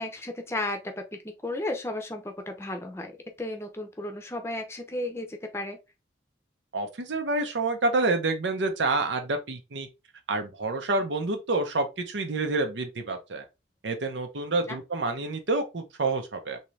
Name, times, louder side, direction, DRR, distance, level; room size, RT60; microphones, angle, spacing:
voice 1, 0.0-5.8 14.7-14.8, left 1 dB, 15° left, 0.6 m, -34 dB
voice 2, 6.7-9.9 10.3-13.4 13.8-16.6, right 3 dB, 85° right, 0.8 m, -28 dB
3.7 x 2.8 x 3.2 m
head